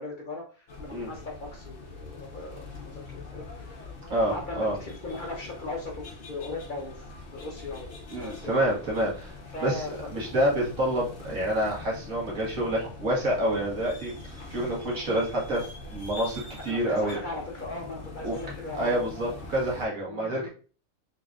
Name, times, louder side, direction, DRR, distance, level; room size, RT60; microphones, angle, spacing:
voice 1, 0.0-3.8 4.3-8.5 9.5-9.9 10.5-10.6 16.7-19.1 20.1-20.5, left 2 dB, 40° left, -1 dB, 0.9 m, -38 dB
sound 1, 0.7-19.9, left 3 dB, 60° left, 1.2 m, -43 dB
voice 2, 4.1-4.8 8.1-9.3 9.6-9.8 10.1-14.1 14.5-15.7 15.9-17.2 18.2-18.4 18.7-20.5, right 1 dB, 80° right, -3 dB, 1.9 m, -27 dB
3.9 x 3.8 x 2.4 m, 0.38 s
omnidirectional pair, 1.4 m